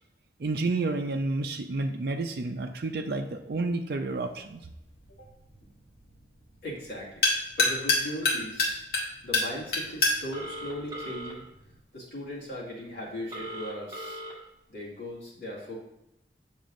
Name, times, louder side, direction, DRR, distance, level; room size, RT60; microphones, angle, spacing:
voice 1, 0.4-4.6, right 2 dB, 60° right, 4 dB, 0.4 m, -30 dB
sound 1, 4.1-11.8, left 3 dB, 60° left, 1.4 m, -30 dB
voice 2, 6.6-7.2 7.6-8.8 9.2-11.4 11.9-14.2 14.7-15.8, equal, 80° left, -6 dB, 2.3 m, -38 dB
Telephone, 10.3-11.3 13.3-14.3, equal, 20° right, 1.2 m, -38 dB
7.4 x 6.0 x 2.6 m, 0.88 s
head